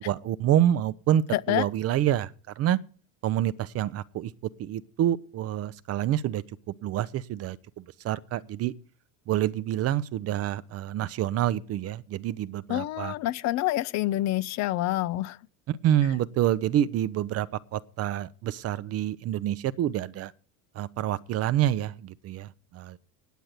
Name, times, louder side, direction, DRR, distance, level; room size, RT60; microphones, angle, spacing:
voice 1, 0.0-2.8 3.2-4.3 4.6-6.4 6.8-8.7 9.3-13.1 15.7-20.3 20.7-23.0, right 11 dB, 40° right, 0.6 m, -27 dB
voice 2, 1.3-1.6 12.7-15.4, left 15 dB, 45° left, 0.5 m, -27 dB
9.2 x 8.8 x 8.1 m
cardioid pair, 135°, 39 cm